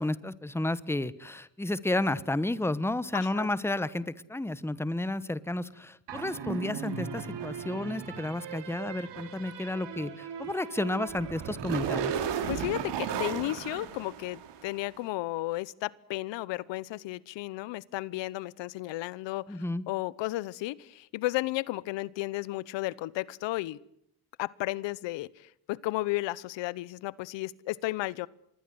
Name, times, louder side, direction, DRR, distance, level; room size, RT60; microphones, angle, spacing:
voice 1, 0.0-12.2 19.5-19.8, left 2 dB, 5° left, 16 dB, 1.2 m, -32 dB
voice 2, 3.1-3.5 12.5-23.8 24.4-28.3, left 18 dB, 85° left, 22 dB, 1.0 m, -33 dB
sound 1, 6.1-14.8, right 7 dB, 75° right, 3.5 m, -36 dB
26.0 x 22.0 x 7.8 m, 0.75 s
cardioid pair, 90°, 43 cm